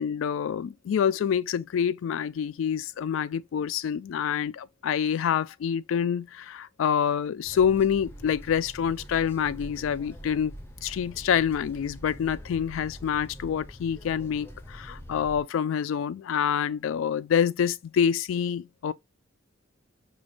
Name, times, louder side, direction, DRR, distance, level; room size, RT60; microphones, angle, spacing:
voice 1, 0.0-10.5 10.8-18.9, left 8 dB, 80° left, 0.3 m, -27 dB
sound 1, 7.4-15.4, equal, 10° left, 0.5 m, -44 dB
5.0 x 2.2 x 2.4 m
head